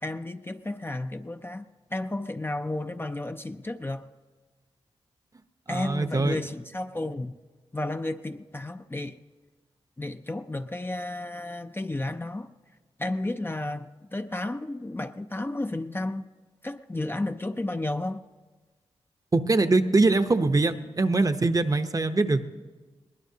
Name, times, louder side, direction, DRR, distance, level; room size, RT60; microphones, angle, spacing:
voice 1, 0.0-4.1 5.7-7.4 7.7-9.2 10.0-12.5 13.0-16.3 16.6-18.2, left 2 dB, 20° left, 0.5 m, -32 dB
voice 2, 5.7-6.4 19.3-22.6, right 3 dB, 30° right, 0.8 m, -23 dB
21.5 x 19.0 x 2.8 m
cardioid pair, 50°, 11 cm